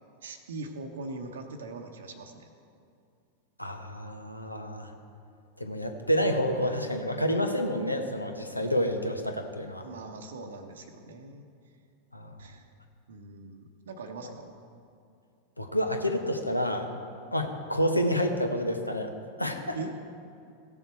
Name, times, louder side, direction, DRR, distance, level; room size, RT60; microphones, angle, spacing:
voice 1, 0.2-2.5 9.8-11.4 12.4-12.7 13.1-14.5 19.7-19.9, right 3 dB, 65° right, 4 dB, 0.8 m, -41 dB
voice 2, 3.6-4.9 5.6-9.9 12.1-12.4 15.6-16.9 17.3-19.1 19.4-19.8, equal, 85° left, 5 dB, 0.9 m, -29 dB
16.0 x 7.0 x 4.6 m, 2.5 s
figure-of-eight pair, 90°, 0 cm